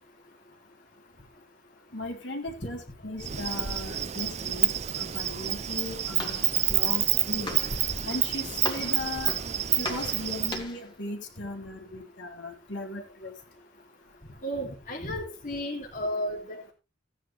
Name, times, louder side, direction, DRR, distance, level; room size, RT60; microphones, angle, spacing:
voice 1, 1.9-7.6 8.0-9.3 9.8-13.3, left 2 dB, 60° left, 2 dB, 3.5 m, -37 dB
Insect, 3.2-10.6, right 12 dB, 35° right, 0.6 m, -28 dB
Walk footsteps, 5.5-10.9, left 2 dB, 25° left, 2.6 m, -39 dB
voice 2, 14.4-16.7, equal, 40° left, -1 dB, 2.9 m, -33 dB
15.5 x 10.0 x 3.4 m, 0.28 s
head